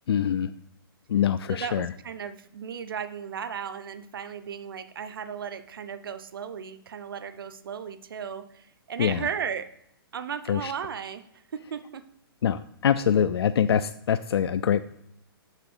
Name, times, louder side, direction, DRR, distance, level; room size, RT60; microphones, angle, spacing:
voice 1, 0.1-0.5 1.1-1.9 9.0-9.2 10.5-10.7 12.4-14.8, left 8 dB, 85° left, 13 dB, 0.4 m, -24 dB
voice 2, 1.5-9.7 10.1-12.0, right 7 dB, 65° right, 12 dB, 0.7 m, -35 dB
6.8 x 4.9 x 6.1 m, 0.75 s
hypercardioid pair, 180°, 13 cm